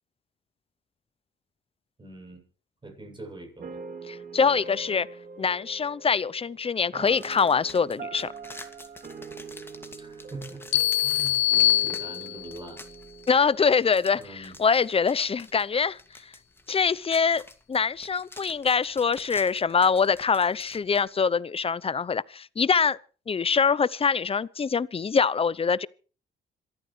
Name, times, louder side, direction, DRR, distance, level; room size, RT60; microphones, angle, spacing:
voice 1, 2.0-2.4 2.8-3.8 10.0-12.8 14.1-14.5, right 2 dB, 25° right, 7.8 m, -43 dB
sound 1, 3.6-14.7, right 5 dB, 45° right, 2.5 m, -44 dB
voice 2, 4.1-5.1 5.4-8.3 13.3-16.0 16.7-17.4 17.7-23.0 23.3-25.9, left 5 dB, 30° left, 0.7 m, -24 dB
sound 2, 7.0-21.0, left 2 dB, 10° left, 2.4 m, -48 dB
sound 3, 10.7-12.6, left 14 dB, 75° left, 0.7 m, -23 dB
26.5 x 13.5 x 3.3 m
cardioid pair, 90°, 20 cm